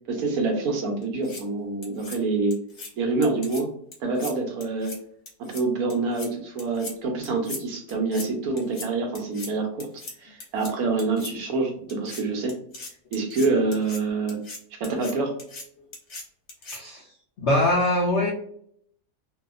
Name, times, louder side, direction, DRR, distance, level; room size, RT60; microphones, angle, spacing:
voice 1, 0.1-2.6 3.0-3.7 4.0-4.9 5.4-9.9 10.2-12.6 13.1-14.4 14.8-15.3, right 3 dB, 70° right, 2 dB, 1.1 m, -26 dB
sound 1, 1.0-1.4 1.8-2.2 2.5-2.9 3.2-3.6 3.9-4.3 4.6-5.0 5.3-5.6 5.9-6.3 6.6-6.9 7.2-7.6 7.9-8.3 8.6-8.9 9.2-9.5 9.8-10.1 10.4-10.7 11.0-11.3 11.9-12.2 12.5-14.0 14.3-14.6 14.8-15.1 15.4-15.6 15.9-16.2 16.5-16.8, left 3 dB, 50° left, 1.0 m, -38 dB
voice 2, 16.7-17.0 17.4-18.3, left 1 dB, 75° left, -1 dB, 0.6 m, -22 dB
2.7 x 2.4 x 2.3 m, 0.66 s
omnidirectional pair, 1.8 m